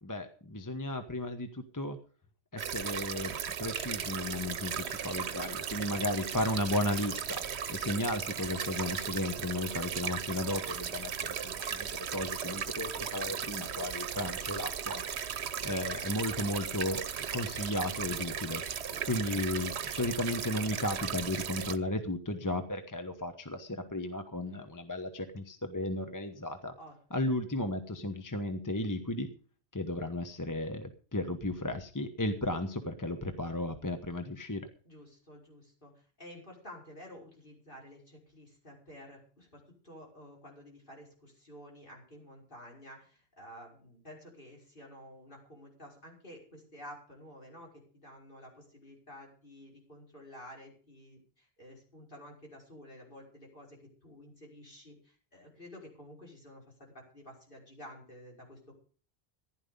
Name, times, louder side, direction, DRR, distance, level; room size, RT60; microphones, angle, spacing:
voice 1, 0.0-2.0 2.5-7.4 7.7-15.0 15.6-17.0 17.3-18.6 19.0-26.7 27.1-29.3 29.7-34.7, left 1 dB, 20° left, 7 dB, 1.1 m, -34 dB
sound 1, 2.6-21.8, right 8 dB, 80° right, 1.1 m, -37 dB
voice 2, 18.8-19.1 24.5-24.7 26.8-26.9 27.2-27.4 34.8-58.7, equal, 55° left, -2 dB, 5.7 m, -51 dB
15.0 x 11.0 x 5.3 m, 0.42 s
omnidirectional pair, 1.1 m